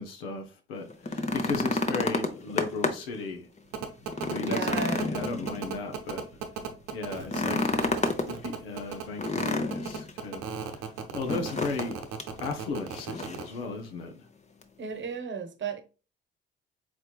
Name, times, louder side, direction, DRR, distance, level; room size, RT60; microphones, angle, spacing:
voice 1, 0.0-3.5 4.2-6.2 6.9-7.9 8.2-10.4 10.7-10.9 11.1-12.1 12.4-14.2, left 3 dB, 80° left, 0.8 m, -36 dB
sound 1, 0.9-3.2 3.6-3.7 4.1-6.0 7.2-8.3 9.2-10.1 11.3-11.9 12.2-12.3 12.9-13.5 14.6-14.7, left 3 dB, 25° left, 0.8 m, -29 dB
sound 2, 3.7-13.4, right 8 dB, 70° right, 0.8 m, -35 dB
voice 2, 4.1-5.1 14.8-15.8, right 5 dB, 40° right, 1.0 m, -34 dB
4.3 x 4.2 x 2.3 m
figure-of-eight pair, 45°, 29 cm